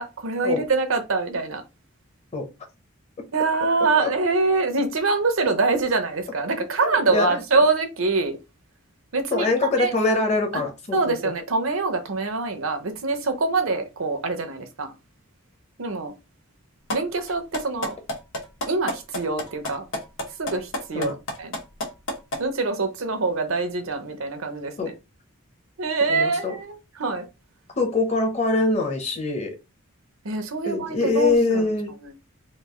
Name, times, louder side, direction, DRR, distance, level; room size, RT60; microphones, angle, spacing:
voice 1, 0.0-1.6 3.3-8.4 9.1-9.5 9.8-9.9 10.5-10.6 10.9-14.9 15.8-16.1 16.9-18.0 18.7-19.8 20.4-21.6 22.4-24.9 25.8-27.3 30.2-31.7 32.0-32.1, right 3 dB, 80° right, 0.7 m, -24 dB
voice 2, 6.8-7.4 9.3-11.1 20.9-21.2 24.8-24.9 26.1-26.6 27.8-29.6 30.6-31.9, left 3 dB, 30° left, 0.8 m, -24 dB
sound 1, 16.9-17.0 17.3-22.4, equal, 70° left, 1.0 m, -28 dB
3.1 x 2.5 x 3.6 m
head